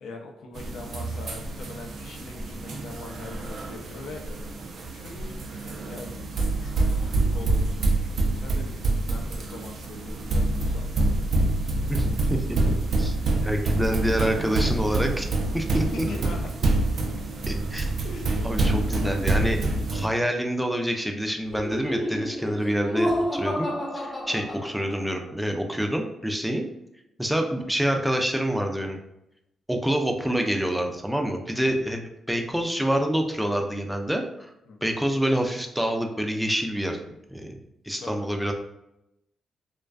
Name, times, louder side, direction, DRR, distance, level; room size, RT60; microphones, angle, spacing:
voice 1, 0.0-4.2 4.9-6.1 6.6-10.9 15.9-16.5 18.0-18.9 19.9-20.3 27.2-27.4 34.6-35.0 38.0-38.3, left 2 dB, 75° left, 2 dB, 0.4 m, -42 dB
sound 1, 0.5-20.0, right 2 dB, 65° right, 0.4 m, -26 dB
voice 2, 11.9-13.1 13.4-15.3 15.5-15.8 17.5-17.9 18.4-26.7 27.2-29.0 29.7-34.5 34.8-37.0 37.3-37.6 37.8-38.5, equal, 5° right, 3 dB, 0.4 m, -27 dB
Laughter, 21.5-25.2, equal, 35° left, 0.9 m, -30 dB
2.4 x 2.2 x 2.3 m, 0.86 s
supercardioid pair, 60°, 0 cm